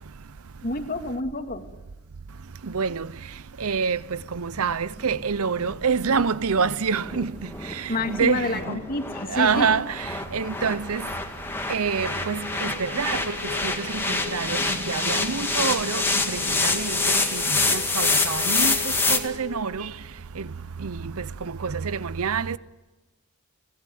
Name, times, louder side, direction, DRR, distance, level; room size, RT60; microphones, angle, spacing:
voice 1, 0.6-1.6 7.9-9.7, left 2 dB, 40° left, 2.1 m, -28 dB
voice 2, 3.6-4.0 4.6-7.3 8.1-8.4 9.3-9.8 10.3-11.0 11.7-12.4 13.0-13.2 14.3-14.4 14.9-15.2 15.6-16.0 16.6-16.9 18.0-18.7 19.2-19.8 22.2-22.4, right 6 dB, 70° right, 0.7 m, -24 dB
sound 1, 4.1-19.2, left 3 dB, 10° left, 1.9 m, -27 dB
sound 2, 11.7-20.2, left 2 dB, 45° right, 2.5 m, -38 dB
24.5 x 18.0 x 9.3 m
head